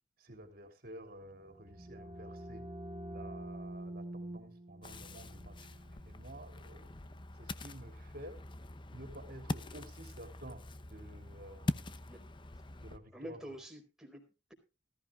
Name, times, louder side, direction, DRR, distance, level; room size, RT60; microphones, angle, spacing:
voice 1, 0.2-2.7 3.1-5.7 6.1-7.1 7.4-8.4 8.9-10.6 10.9-11.9 12.8-13.5, right 1 dB, 55° right, 5 dB, 3.2 m, -51 dB
sound 1, 1.3-6.9, right 1 dB, 30° right, 1.0 m, -47 dB
Ocean, 4.8-13.0, left 2 dB, 25° left, 0.7 m, -43 dB
voice 2, 13.1-14.5, right 1 dB, 5° right, 1 dB, 4.1 m, -48 dB
18.5 x 14.0 x 2.4 m, 0.30 s
head